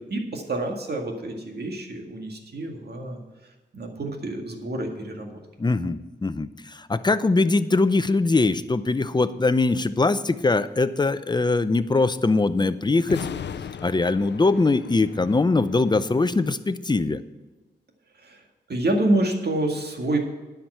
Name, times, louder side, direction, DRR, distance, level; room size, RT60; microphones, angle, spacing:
voice 1, 0.0-3.2 3.7-5.3 18.2-18.4 18.7-20.2, right 1 dB, 65° right, 2 dB, 2.0 m, -27 dB
voice 2, 5.6-13.3 13.8-17.2, left 3 dB, 25° left, 13 dB, 0.6 m, -22 dB
sound 1, 13.0-16.3, left 7 dB, 75° left, 0.6 m, -37 dB
10.0 x 5.9 x 7.9 m, 1.2 s
cardioid pair, 60°, 18 cm